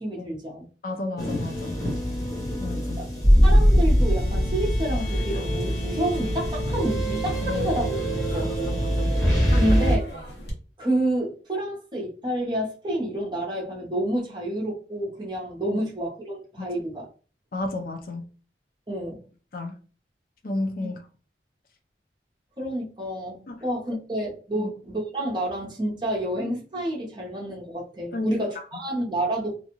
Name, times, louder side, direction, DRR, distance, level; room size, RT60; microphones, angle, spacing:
voice 1, 0.0-0.7 3.0-3.1 3.4-8.7 9.5-10.0 10.8-17.1 18.9-19.2 20.8-20.9 22.6-29.5, right 1 dB, 25° right, -3 dB, 0.8 m, -29 dB
voice 2, 0.8-1.8 2.6-3.1 7.4-7.7 8.4-9.2 9.5-9.6 17.5-18.3 19.5-19.7 20.4-21.0 23.5-23.6 24.6-24.7 28.1-28.4, left 2 dB, 50° left, 4 dB, 0.5 m, -32 dB
sound 1, 1.2-10.0, equal, 20° left, 0.8 m, -22 dB
sound 2, 5.0-10.5, equal, 70° left, 1.0 m, -42 dB
2.5 x 2.3 x 2.9 m, 0.38 s
head